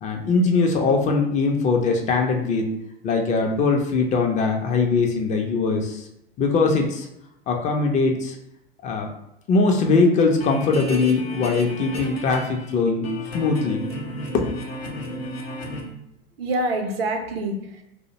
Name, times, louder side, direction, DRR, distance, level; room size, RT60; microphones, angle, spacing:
voice 1, 0.0-2.7 3.0-6.0 6.4-7.1 7.5-8.4 8.8-9.1 9.5-13.8 14.3-14.4, left 4 dB, 25° left, 3 dB, 0.3 m, -21 dB
sound 1, 10.0-12.7 13.0-15.8, left 1 dB, 85° left, 0.6 m, -33 dB
voice 2, 16.4-17.8, right 1 dB, 80° right, 5 dB, 0.5 m, -27 dB
2.4 x 2.0 x 2.7 m, 0.82 s
hypercardioid pair, 90°, 30 cm